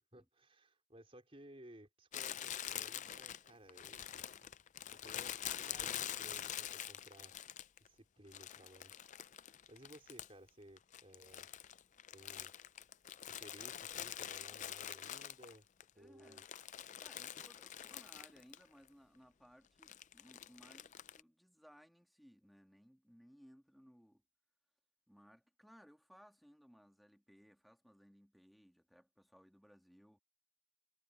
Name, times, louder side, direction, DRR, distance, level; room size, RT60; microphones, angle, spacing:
voice 1, 0.0-4.3 4.9-7.5 7.8-8.9 9.7-11.5 12.1-12.5 13.3-15.6 16.0-16.4, right 1 dB, 25° right, 4.4 m, -59 dB
Crumpling crinkling, 2.1-7.9 8.3-10.5 10.8-15.8 16.2-18.6 18.9-19.0 19.8-21.2, left 10 dB, 35° left, 0.4 m, -45 dB
voice 2, 15.9-16.5 17.0-24.2 25.1-30.2, equal, ahead, 1.5 m, -63 dB
head